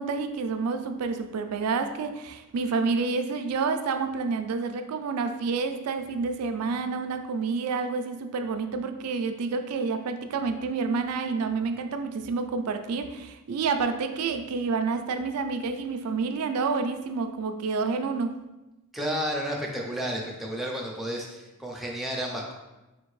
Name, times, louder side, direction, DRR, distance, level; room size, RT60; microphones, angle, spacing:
voice 1, 0.0-18.4, right 4 dB, 90° right, 8 dB, 0.4 m, -29 dB
voice 2, 18.9-22.5, equal, ahead, -2 dB, 0.5 m, -31 dB
4.2 x 2.7 x 3.1 m, 1.0 s
head